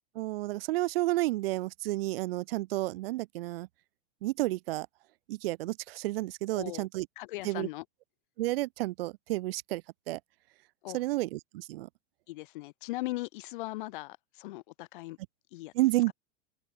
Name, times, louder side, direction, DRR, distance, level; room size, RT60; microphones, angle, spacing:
voice 1, 0.2-3.7 4.2-4.9 5.3-7.1 7.4-7.7 8.4-9.8 10.1-10.2 10.9-11.9 15.8-16.1, right 18 dB, 60° right, 0.5 m, -31 dB
voice 2, 6.5-6.9 7.2-7.8 10.8-11.0 12.3-15.2 15.5-15.7, left 19 dB, 50° left, 0.4 m, -39 dB
open air
supercardioid pair, 165°, 33 cm